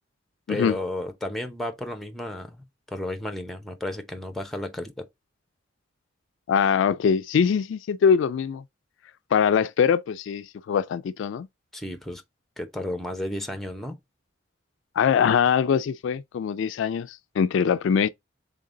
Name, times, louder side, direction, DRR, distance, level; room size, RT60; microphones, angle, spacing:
voice 1, 0.5-5.1 11.7-12.2 12.6-14.0, left 1 dB, ahead, 0.7 m, -33 dB
voice 2, 6.5-8.6 9.3-11.5 15.0-18.1, left 7 dB, 70° left, 0.3 m, -22 dB
3.8 x 3.7 x 3.7 m
head